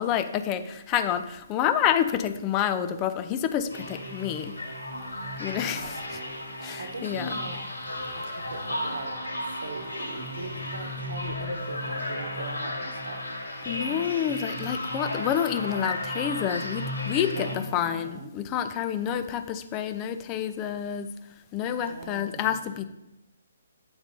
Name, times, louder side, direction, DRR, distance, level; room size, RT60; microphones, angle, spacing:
voice 1, 0.0-4.6 5.4-6.2 6.6-7.3 13.6-21.2 21.5-22.8, left 9 dB, 25° left, 10 dB, 0.5 m, -28 dB
sound 1, 3.7-17.6, left 1 dB, 75° left, 2.1 m, -34 dB
voice 2, 5.5-6.0 6.6-7.6 8.2-9.2 9.4-13.3 17.3-18.3 21.8-22.6, right 3 dB, 65° right, 6 dB, 1.0 m, -40 dB
8.8 x 4.0 x 5.2 m, 0.91 s
figure-of-eight pair, 135°, 0 cm